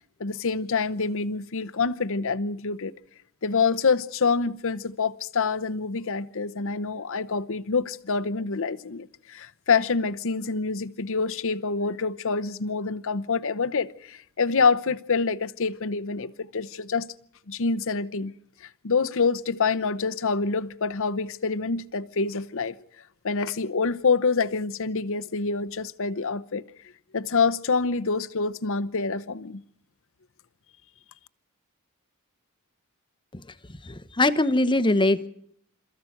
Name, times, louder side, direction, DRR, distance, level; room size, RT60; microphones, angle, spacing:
voice 1, 0.2-2.9 3.4-17.1 17.5-18.3 18.8-22.7 23.2-26.6 27.1-29.6, left 4 dB, 60° left, 0.8 m, -26 dB
voice 2, 33.8-35.3, left 2 dB, 20° left, 0.9 m, -22 dB
27.5 x 14.5 x 7.9 m
head